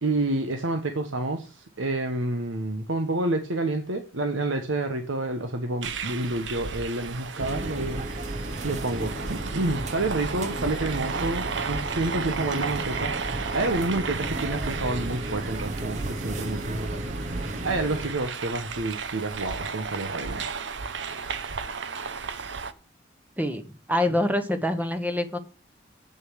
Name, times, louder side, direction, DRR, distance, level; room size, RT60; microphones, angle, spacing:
voice 1, 0.0-17.0 17.6-20.4, right 2 dB, 90° right, 6 dB, 1.2 m, -29 dB
sound 1, 5.8-22.7, right 5 dB, 70° right, 0.8 m, -34 dB
sound 2, 7.4-18.1, right 1 dB, 35° right, 0.8 m, -33 dB
voice 2, 23.9-25.4, left 1 dB, 10° right, 8 dB, 1.0 m, -25 dB
8.1 x 6.6 x 6.3 m, 0.35 s
head